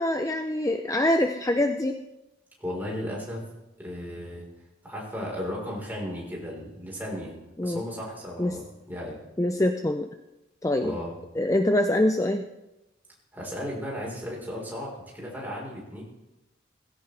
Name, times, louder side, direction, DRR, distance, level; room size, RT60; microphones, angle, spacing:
voice 1, 0.0-2.0 7.6-7.8 8.4-8.6 9.4-10.1 10.6-11.0 11.4-12.4, left 1 dB, 15° left, 6 dB, 0.5 m, -24 dB
voice 2, 2.6-3.4 3.8-4.5 4.8-7.3 7.6-9.2 10.8-11.1 13.3-16.0, equal, 10° right, -3 dB, 4.2 m, -35 dB
18.0 x 16.0 x 3.4 m, 0.98 s
head